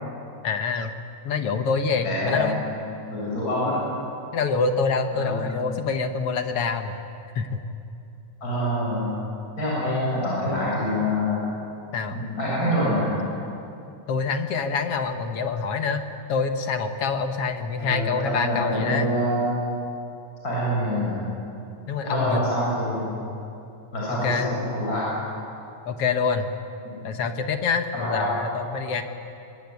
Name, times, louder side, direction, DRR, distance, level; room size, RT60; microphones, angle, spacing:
voice 1, 0.4-0.9 1.3-2.6 4.3-7.0 7.4-7.6 11.9-12.2 14.1-16.0 16.3-19.1 21.9-22.4 24.1-24.5 25.9-26.5 27.0-29.0, left 5 dB, 55° left, 7 dB, 1.9 m, -26 dB
voice 2, 2.0-2.6 3.1-3.8 5.1-5.4 8.4-9.1 9.6-11.5 12.1-13.1 17.8-19.5 20.4-21.2 22.0-23.2 23.9-25.1 26.8-26.9 27.9-28.4, equal, 25° left, -6 dB, 8.5 m, -26 dB
23.0 x 23.0 x 9.6 m, 2.6 s
omnidirectional pair, 3.7 m